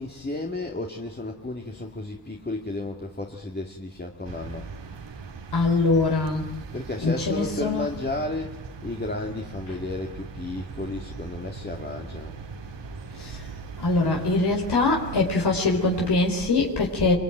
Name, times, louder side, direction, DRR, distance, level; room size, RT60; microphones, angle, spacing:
voice 1, 0.0-4.7 6.7-12.4, left 2 dB, 25° left, 2 dB, 2.2 m, -33 dB
sound 1, 4.2-16.1, right 5 dB, 85° right, 2.6 m, -40 dB
voice 2, 5.5-6.5 7.0-8.0 9.7-9.8 13.1-13.5 13.8-17.1, left 3 dB, 65° left, 0 dB, 4.2 m, -23 dB
26.5 x 24.0 x 9.1 m, 0.83 s
wide cardioid pair, 95°, 42 cm